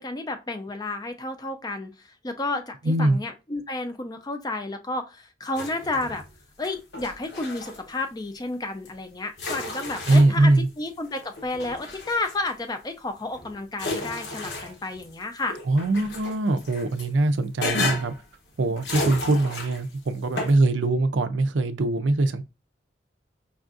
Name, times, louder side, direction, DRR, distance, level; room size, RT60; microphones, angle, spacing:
voice 1, 0.0-1.9 2.2-6.2 6.6-10.5 10.8-15.6, left 2 dB, 20° left, 0.4 m, -31 dB
voice 2, 2.8-3.2 10.1-10.7 15.7-18.1 18.6-22.4, right 2 dB, 85° right, 0.4 m, -22 dB
sound 1, 5.5-6.3 6.6-7.8 8.8-8.9 9.4-10.6 11.1-12.5 13.1-15.1 15.5-17.1 17.6-18.2 18.8-19.9 20.4-20.6, left 2 dB, 70° left, 1.0 m, -33 dB
5.3 x 2.5 x 2.4 m
head